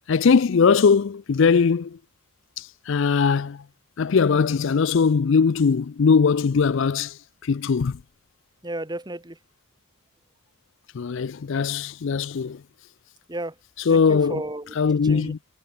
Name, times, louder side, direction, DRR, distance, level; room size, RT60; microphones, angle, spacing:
voice 1, 0.1-2.0 2.6-3.6 4.0-7.2 7.4-8.0 10.9-12.6 13.9-14.4 14.8-15.4, left 5 dB, 60° left, 0.4 m, -20 dB
voice 2, 8.6-9.4 13.3-13.6 13.9-14.7 15.0-15.3, right 1 dB, 20° right, 1.9 m, -33 dB
head